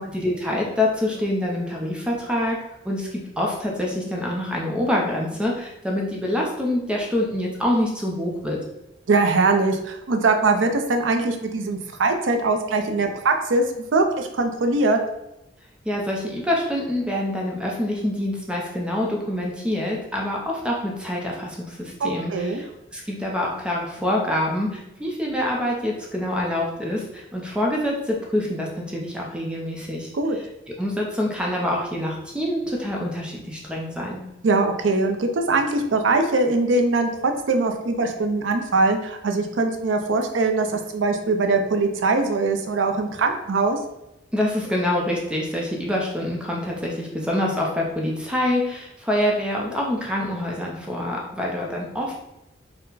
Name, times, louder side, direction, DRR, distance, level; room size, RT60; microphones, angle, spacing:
voice 1, 0.0-2.6 2.8-8.6 15.8-34.2 44.3-52.1, left 1 dB, 5° right, -2 dB, 0.5 m, -26 dB
voice 2, 9.1-13.6 13.9-15.0 22.0-22.6 30.1-30.4 34.4-43.8, right 3 dB, 90° right, 5 dB, 0.5 m, -22 dB
4.3 x 2.1 x 3.9 m, 0.88 s
head